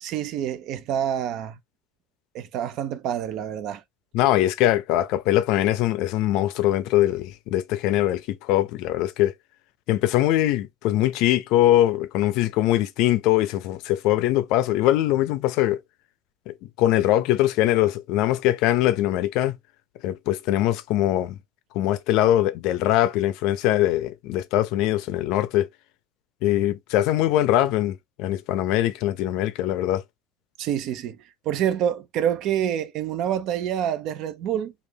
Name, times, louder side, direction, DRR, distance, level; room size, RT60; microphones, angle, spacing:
voice 1, 0.0-1.6 2.3-3.8 30.6-31.2 31.5-34.7, right 10 dB, 50° right, 0.5 m, -27 dB
voice 2, 4.1-9.3 9.9-15.8 16.5-19.6 20.0-21.4 21.7-25.7 26.4-30.0, left 14 dB, 60° left, 0.5 m, -22 dB
3.2 x 2.5 x 3.3 m
cardioid pair, 175°, 0 cm